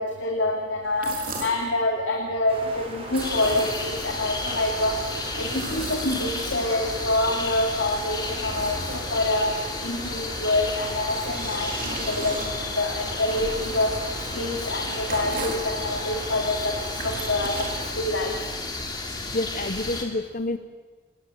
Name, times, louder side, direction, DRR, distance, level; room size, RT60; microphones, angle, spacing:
voice 1, 0.0-5.0 5.4-9.5 9.8-13.9 14.3-18.3, left 2 dB, 75° left, 1 dB, 2.7 m, -26 dB
sound 1, 0.8-1.7 3.0-4.1 5.1-6.9 7.6-9.4 10.8-15.7 16.7-18.3, right 3 dB, 45° right, 3.8 m, -38 dB
sound 2, 2.5-17.9, right 1 dB, 30° right, 5.5 m, -39 dB
sound 3, 3.2-20.0, left 3 dB, 20° left, 2.7 m, -33 dB
voice 2, 19.3-20.6, left 2 dB, 45° left, 10 dB, 0.9 m, -28 dB
27.0 x 20.0 x 7.9 m, 1.3 s
head